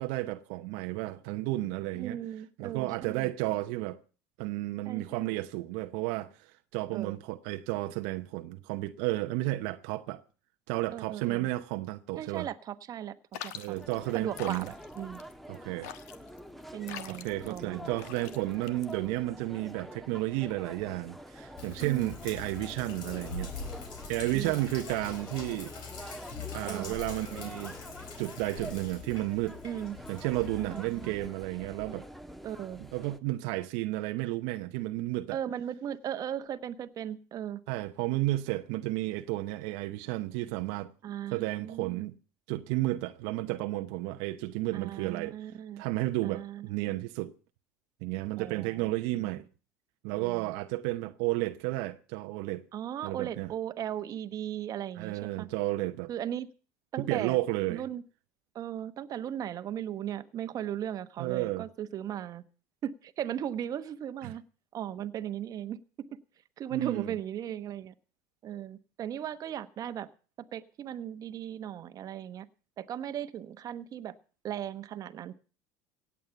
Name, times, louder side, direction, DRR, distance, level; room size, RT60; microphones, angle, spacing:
voice 1, 0.0-2.2 2.6-4.0 4.4-10.2 10.7-12.5 13.5-14.7 15.5-15.9 17.1-23.5 24.1-25.7 26.5-27.7 28.2-29.6 30.1-32.0 32.8-35.4 37.7-40.9 41.3-42.1 42.5-45.3 45.8-47.3 48.0-49.4 50.0-52.6 53.0-53.5 55.0-56.1 57.0-57.8 61.2-61.7 64.2-64.3 66.7-67.1, right 18 dB, 70° right, 0.9 m, -32 dB
voice 2, 1.9-3.3 4.8-5.4 6.9-7.2 10.9-11.5 12.2-13.2 13.4-13.8 14.1-15.2 16.7-17.9 21.8-22.2 24.2-24.6 26.6-27.0 29.6-30.0 30.6-31.1 32.4-32.8 35.3-37.6 41.0-42.1 44.7-45.8 46.2-47.0 48.4-48.8 49.2-49.4 50.1-50.5 52.7-55.5 56.1-56.5 56.9-57.4 57.7-58.0 58.5-62.4 62.8-64.4 64.7-65.8 66.6-67.9 68.4-70.1 70.5-72.5 72.8-74.1 74.4-75.3, right 10 dB, 45° right, 1.2 m, -37 dB
sound 1, 13.3-19.3, left 10 dB, 75° left, 1.3 m, -45 dB
sound 2, 13.7-33.2, equal, ahead, 1.4 m, -46 dB
Sink (filling or washing), 21.6-31.3, left 5 dB, 60° left, 4.2 m, -43 dB
17.0 x 8.4 x 7.0 m
hypercardioid pair, 85°, 9 cm